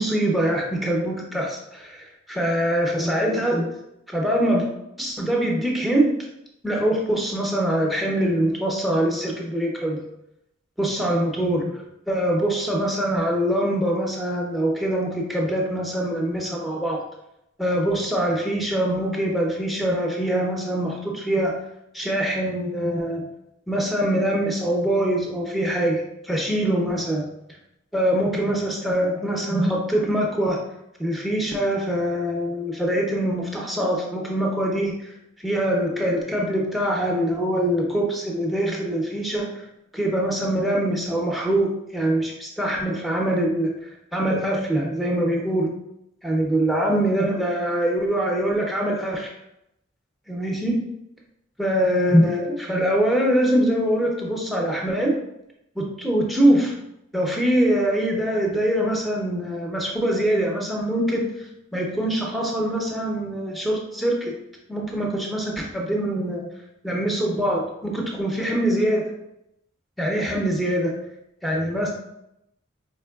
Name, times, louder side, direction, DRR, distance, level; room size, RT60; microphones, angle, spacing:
voice 1, 0.0-3.7 4.1-4.6 5.0-6.1 6.6-10.0 10.8-11.7 12.1-17.0 17.6-21.5 21.9-23.2 23.7-27.2 27.9-30.6 31.0-35.1 35.4-39.6 39.9-43.7 44.1-45.7 46.2-49.3 50.3-50.8 51.6-55.1 55.8-56.7 57.1-61.5 61.7-64.3 64.7-66.5 66.8-69.1 70.0-70.9 71.4-71.9, right 1 dB, ahead, -1 dB, 0.5 m, -23 dB
4.4 x 3.0 x 2.3 m, 0.82 s
head